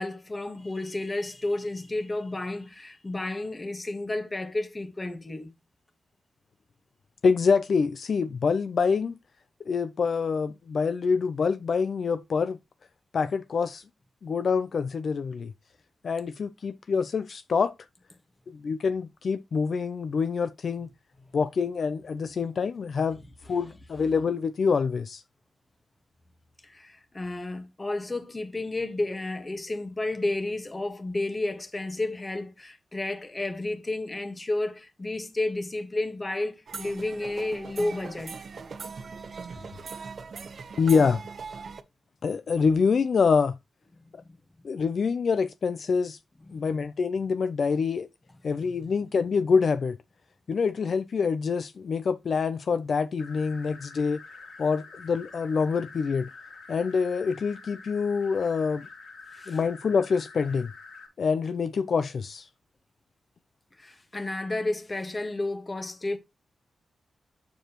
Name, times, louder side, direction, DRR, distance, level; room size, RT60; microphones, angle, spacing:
voice 1, 0.0-5.5 26.6-38.3 46.5-46.7 59.3-59.6 63.8-66.2, left 2 dB, 20° left, 1.5 m, -31 dB
voice 2, 7.2-9.2 9.7-12.6 13.1-13.8 14.2-15.5 16.0-17.7 18.6-20.9 21.3-23.2 23.5-25.2 40.8-41.2 42.2-43.6 44.6-46.2 46.5-48.1 48.4-50.0 50.5-54.2 54.6-56.3 56.7-58.9 59.5-60.7 61.2-62.5, left 5 dB, 55° left, 0.5 m, -26 dB
sound 1, 36.7-41.8, right 5 dB, 50° right, 0.9 m, -40 dB
sound 2, 53.2-61.1, left 4 dB, 85° left, 4.6 m, -47 dB
9.1 x 6.9 x 3.0 m
wide cardioid pair, 145°, 0 cm